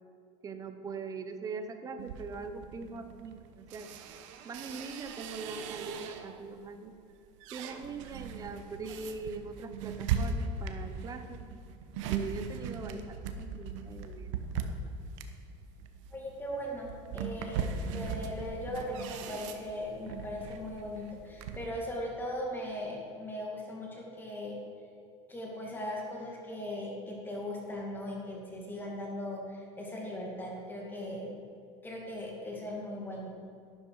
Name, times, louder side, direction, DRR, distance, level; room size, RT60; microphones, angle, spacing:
voice 1, 0.4-3.9 4.4-7.0 7.5-11.4 12.1-14.9, right 4 dB, 20° right, 8 dB, 0.9 m, -42 dB
sound 1, 2.0-6.5 6.9-21.7, right 5 dB, 90° right, 1.1 m, -39 dB
voice 2, 16.1-24.6 25.3-31.4 31.8-33.3, left 1 dB, 15° left, -2 dB, 2.2 m, -39 dB
12.0 x 11.0 x 4.8 m, 2.5 s
cardioid pair, 155°, 15 cm